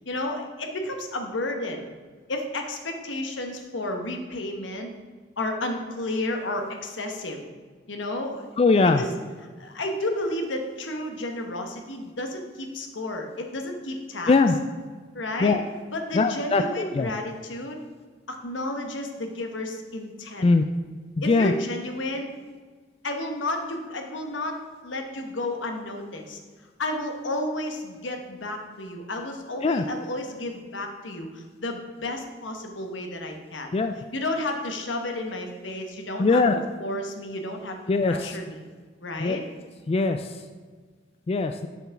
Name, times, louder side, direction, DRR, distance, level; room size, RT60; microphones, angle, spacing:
voice 1, 0.0-1.9 2.3-4.9 5.4-7.4 7.9-8.5 8.8-9.1 9.6-14.3 15.1-15.5 15.9-17.8 18.3-20.5 21.2-22.3 23.0-24.6 24.8-26.4 26.8-33.7 34.1-36.4 36.8-37.8 38.1-38.6 39.0-39.4, left 1 dB, 80° left, 4 dB, 1.2 m, -32 dB
voice 2, 8.6-9.0 14.3-14.6 15.4-15.6 16.1-17.1 20.4-20.6 21.2-21.5 29.6-29.8 33.7-33.9 36.2-36.6 37.9-38.4 39.2-39.4 39.9-40.4 41.3-41.7, left 3 dB, 30° left, 7 dB, 0.3 m, -21 dB
7.1 x 6.0 x 5.9 m, 1.5 s
head